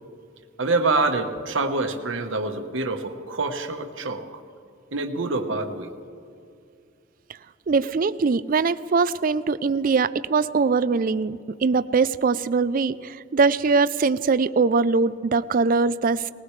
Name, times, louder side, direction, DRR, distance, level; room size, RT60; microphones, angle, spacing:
voice 1, 0.6-4.2 4.9-5.9, right 3 dB, 75° right, 5 dB, 1.2 m, -26 dB
voice 2, 7.7-16.3, right 4 dB, 45° right, 15 dB, 0.4 m, -22 dB
20.5 x 19.5 x 3.2 m, 2.4 s
head